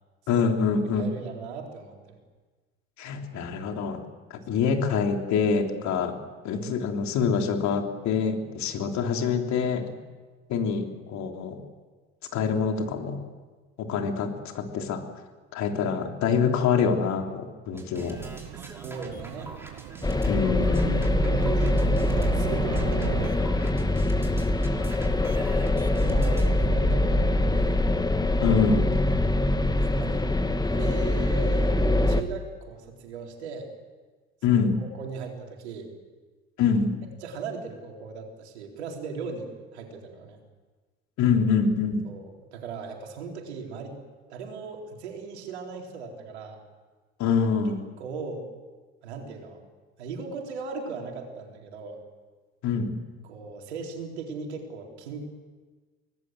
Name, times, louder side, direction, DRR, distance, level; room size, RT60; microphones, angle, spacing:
voice 1, 0.3-1.1 3.0-4.0 4.3-6.2 6.4-9.9 10.5-11.6 12.3-13.2 13.8-15.0 15.5-18.3 20.3-21.1 28.4-28.9 34.4-34.8 36.6-37.0 41.2-42.0 47.2-47.8 52.6-53.0, left 5 dB, 60° left, 4 dB, 3.5 m, -25 dB
voice 2, 1.0-2.2 6.6-6.8 15.6-15.8 18.5-19.5 21.3-21.8 22.1-23.5 25.5-27.9 29.8-30.2 30.6-31.7 32.1-33.7 34.5-35.9 37.2-40.4 42.0-44.0 44.3-46.6 48.0-48.5 49.0-49.6 50.0-52.0 53.2-55.2, right 4 dB, 85° right, 1 dB, 4.2 m, -38 dB
sound 1, 17.7-26.5, right 1 dB, 5° right, 5.7 m, -45 dB
sound 2, 18.0-23.3, right 18 dB, 65° right, 0.8 m, -36 dB
sound 3, 20.0-32.2, left 1 dB, 10° left, 1.5 m, -24 dB
24.5 x 19.5 x 7.9 m, 1.3 s
hypercardioid pair, 70°, 32 cm